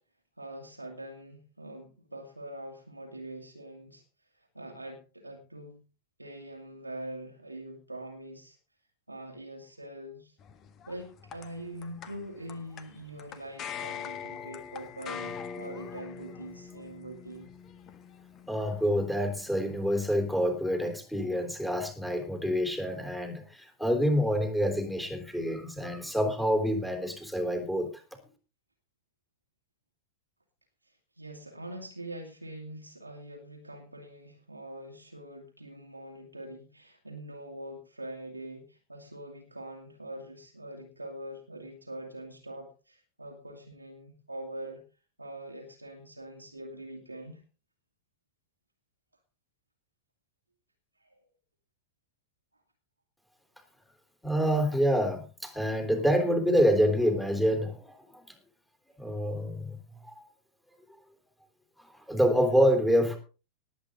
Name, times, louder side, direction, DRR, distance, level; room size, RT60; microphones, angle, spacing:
voice 1, 0.4-4.0 4.3-5.8 6.2-8.6 9.1-10.4 10.9-17.5 30.8-44.8 45.2-47.4 51.0-51.2, right 1 dB, 85° right, 2.2 m, -43 dB
sound 1, 10.4-20.5, left 7 dB, 30° left, 1.5 m, -44 dB
voice 2, 18.5-27.9 54.2-58.2 59.0-59.8 60.1-60.3 61.8-63.2, equal, 5° left, 3.7 m, -27 dB
19.0 x 8.8 x 3.8 m
figure-of-eight pair, 90°, 0 cm